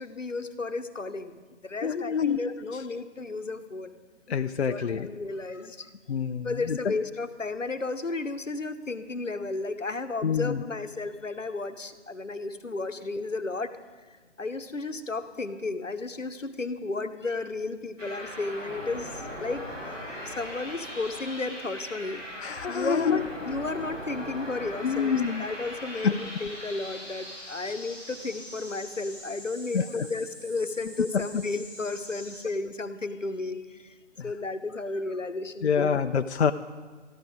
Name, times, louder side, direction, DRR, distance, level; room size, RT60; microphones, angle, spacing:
voice 1, 0.0-3.9 4.7-5.9 6.4-13.7 14.4-22.2 22.7-25.1 25.4-33.9 34.2-36.0, left 3 dB, 90° left, 10 dB, 1.0 m, -33 dB
voice 2, 1.8-2.4 2.7-2.8 4.3-5.1 6.1-7.0 10.2-10.6 22.4-23.2 24.8-25.5 26.0-26.1 27.6-27.7 29.7-30.1 31.1-31.4 34.2-34.3 35.6-36.5, left 6 dB, 60° left, 8 dB, 0.5 m, -27 dB
sound 1, 18.0-32.4, equal, 85° right, 3.7 m, -40 dB
13.5 x 12.0 x 5.0 m, 1.4 s
figure-of-eight pair, 145°, 37 cm